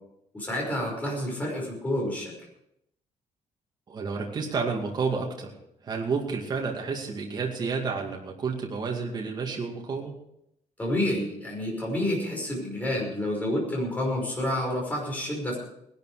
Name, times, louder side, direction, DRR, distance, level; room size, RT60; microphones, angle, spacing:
voice 1, 0.3-2.3 10.8-15.6, left 1 dB, 10° left, -1 dB, 5.5 m, -29 dB
voice 2, 3.9-5.5 5.8-10.1, right 5 dB, 35° right, 0 dB, 2.3 m, -30 dB
19.0 x 12.0 x 4.9 m, 0.79 s
cardioid pair, 175°, 13 cm